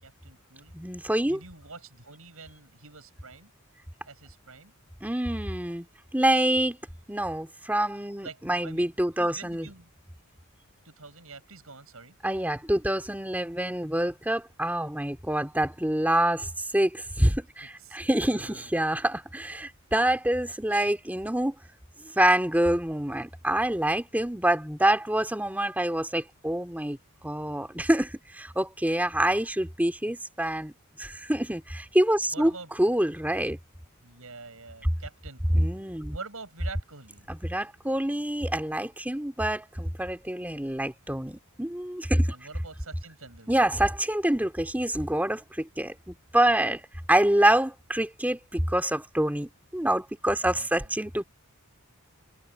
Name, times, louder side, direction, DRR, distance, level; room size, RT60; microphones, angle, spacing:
voice 1, 0.0-0.8 1.0-3.5 4.0-4.7 8.2-8.8 9.2-9.9 10.8-12.2 17.8-18.0 18.2-18.7 32.3-32.7 34.0-37.3 42.3-43.7 50.4-51.0, right 4 dB, 75° right, 6.6 m, -46 dB
voice 2, 0.7-1.4 5.0-5.9 6.1-6.8 7.1-9.7 12.2-21.5 22.0-30.7 31.0-32.5 32.8-33.6 35.5-36.2 37.3-42.4 43.5-46.8 47.1-51.2, right 1 dB, 10° right, 2.4 m, -26 dB
head